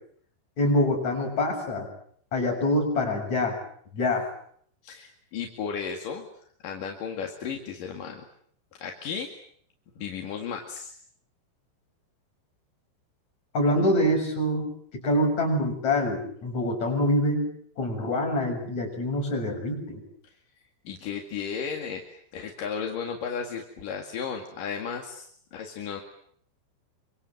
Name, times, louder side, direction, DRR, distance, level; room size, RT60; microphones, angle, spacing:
voice 1, 0.6-1.9 2.3-3.6 3.9-4.3 13.5-17.4 17.8-20.0, left 1 dB, 35° left, 2 dB, 8.1 m, -25 dB
voice 2, 4.8-6.3 6.6-8.2 8.8-9.3 10.0-10.9 20.8-26.0, left 6 dB, 50° left, 2 dB, 3.1 m, -34 dB
27.5 x 25.5 x 7.9 m, 0.64 s
omnidirectional pair, 6.0 m